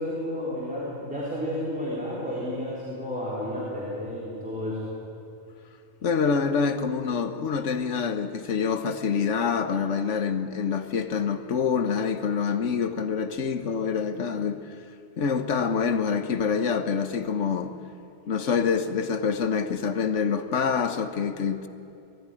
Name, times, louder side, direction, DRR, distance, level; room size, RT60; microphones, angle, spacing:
voice 1, 0.0-4.9, left 1 dB, 5° right, 3.9 m, -31 dB
voice 2, 6.0-14.7 15.2-17.8 18.3-21.7, left 6 dB, 80° left, 1.4 m, -26 dB
21.0 x 14.0 x 9.9 m
omnidirectional pair, 1.2 m